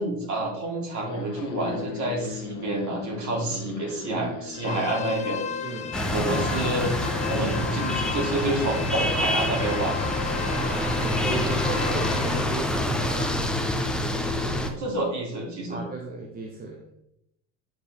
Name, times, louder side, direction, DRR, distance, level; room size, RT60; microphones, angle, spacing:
voice 1, 0.0-5.7 6.1-6.9 7.3-9.9 14.8-15.8, right 2 dB, 35° right, -1 dB, 3.1 m, -28 dB
sound 1, 1.1-13.2, left 6 dB, 40° left, 1.4 m, -41 dB
sound 2, 4.5-12.4, left 8 dB, 20° left, 0.3 m, -35 dB
voice 2, 5.6-6.0 10.4-13.5 15.7-16.8, right 3 dB, 20° right, 0 dB, 1.1 m, -35 dB
sound 3, 5.9-14.7, left 1 dB, ahead, 0.9 m, -27 dB
9.1 x 4.9 x 3.6 m, 0.78 s
hypercardioid pair, 90°, 49 cm